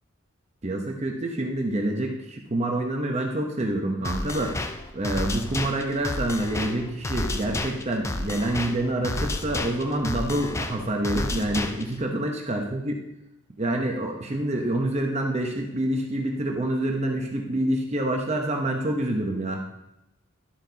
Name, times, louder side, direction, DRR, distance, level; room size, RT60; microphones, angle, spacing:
voice 1, 0.6-4.6 4.9-13.0 13.6-19.6, right 1 dB, 30° right, 2 dB, 0.8 m, -27 dB
sound 1, 4.0-12.0, left 2 dB, 15° left, 0.4 m, -31 dB
12.0 x 7.8 x 2.8 m, 0.88 s
head